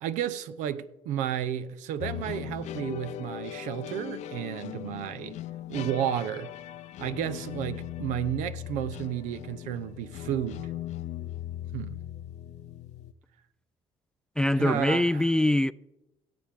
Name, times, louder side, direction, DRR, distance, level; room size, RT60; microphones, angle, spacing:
voice 1, 0.0-5.4 5.7-6.5 7.0-10.7 11.7-12.0 14.6-15.2, right 10 dB, 75° right, 0.7 m, -32 dB
sound 1, 2.0-13.1, left 12 dB, 65° left, 0.6 m, -39 dB
voice 2, 14.4-15.7, left 1 dB, 5° left, 0.3 m, -23 dB
17.5 x 7.7 x 3.5 m
supercardioid pair, 65°, 13 cm